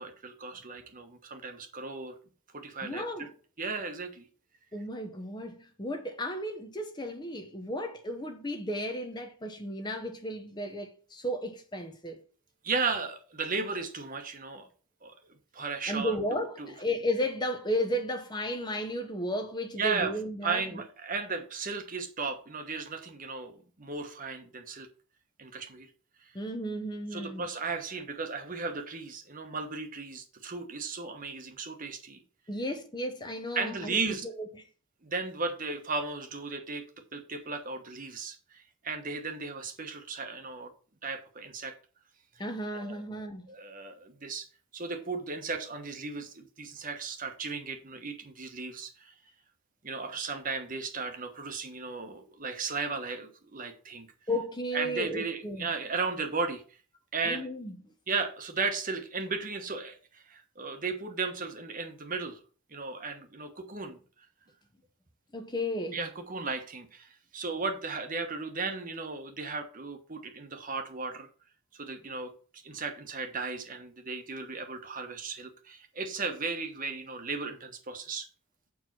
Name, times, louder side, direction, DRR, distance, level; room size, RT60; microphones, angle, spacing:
voice 1, 0.0-2.1 2.5-3.3 3.6-4.3 12.6-14.7 15.0-15.1 15.5-16.7 19.8-24.9 25.4-25.9 27.1-32.2 33.5-34.2 35.0-36.9 37.1-40.7 41.0-41.7 42.7-43.0 43.5-44.5 44.7-49.1 49.8-54.1 54.7-56.6 57.1-57.5 58.1-62.4 62.7-64.0 65.9-71.3 71.7-72.3 72.6-78.3, right 4 dB, 40° right, 1.2 m, -35 dB
voice 2, 2.8-3.3 4.7-12.2 15.9-20.6 26.3-27.5 32.5-34.6 42.4-43.4 54.3-55.7 57.3-57.7 65.3-66.0, equal, 20° left, 0.9 m, -34 dB
7.7 x 4.7 x 6.0 m
head